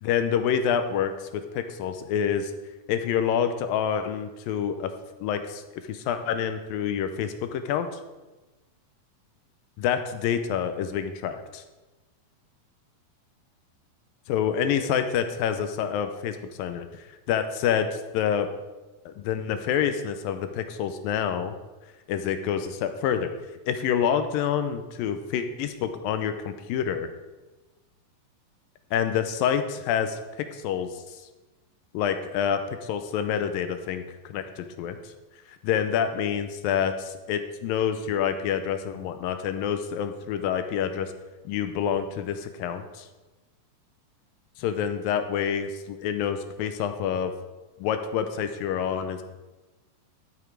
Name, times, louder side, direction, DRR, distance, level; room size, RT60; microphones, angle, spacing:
voice 1, 0.0-2.5 2.9-4.9 5.2-5.6 5.9-7.9 9.8-11.6 14.3-16.9 17.3-18.5 19.1-21.5 22.1-23.3 23.7-27.1 28.9-31.2 31.9-35.1 35.6-41.1 41.5-43.1 44.6-47.3 47.8-49.2, left 8 dB, 80° left, 8 dB, 2.4 m, -27 dB
13.0 x 7.1 x 4.6 m, 1.1 s
omnidirectional pair, 4.2 m